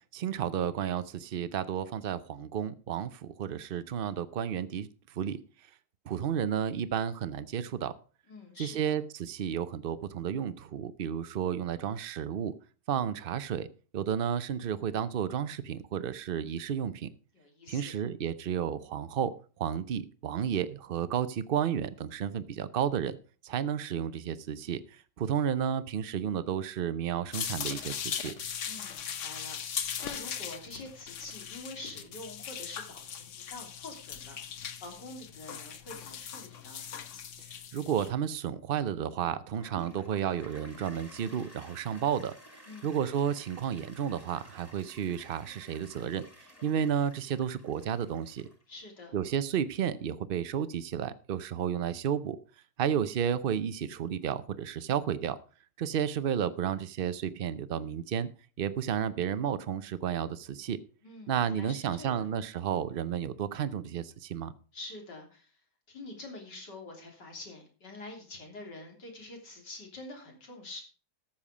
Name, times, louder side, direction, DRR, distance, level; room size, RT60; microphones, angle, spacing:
voice 1, 0.1-4.9 5.1-5.4 6.1-7.9 8.6-12.5 12.9-13.7 13.9-17.1 17.7-23.2 23.4-28.3 37.7-46.2 46.6-48.5 49.1-52.4 52.8-55.4 55.8-58.3 58.6-60.8 61.3-64.5, right 8 dB, 75° right, 14 dB, 0.5 m, -32 dB
voice 2, 8.3-8.9 17.3-17.9 28.7-34.4 34.8-36.8 42.7-43.0 48.7-49.2 61.0-62.3 64.7-65.5 65.9-70.8, left 2 dB, 85° left, 1 dB, 3.9 m, -46 dB
sound 1, 27.3-38.1, left 8 dB, 55° left, 1.1 m, -39 dB
Toilet flush, 39.6-48.8, equal, 10° left, 1.9 m, -53 dB
13.0 x 7.4 x 4.9 m, 0.38 s
omnidirectional pair, 1.8 m